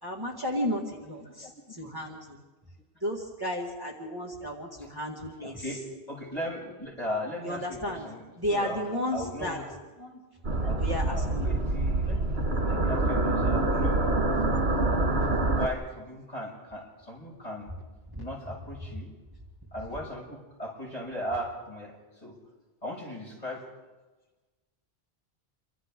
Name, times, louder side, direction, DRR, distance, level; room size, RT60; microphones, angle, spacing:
voice 1, 0.0-2.4 3.0-5.6 7.4-8.1 8.4-9.6 10.8-11.5 18.1-18.3, equal, 20° right, -2 dB, 2.2 m, -33 dB
voice 2, 5.4-8.2 8.5-8.8 9.1-9.6 10.0-10.2 10.6-10.8 11.1-12.4 12.6-14.0 15.5-17.7 18.2-19.1 19.7-21.9 22.2-22.3 22.8-23.6, equal, 40° left, -4 dB, 7.0 m, -37 dB
sound 1, 10.4-15.7, right 2 dB, 85° right, 2.0 m, -26 dB
29.0 x 24.0 x 3.8 m, 1.2 s
omnidirectional pair, 1.0 m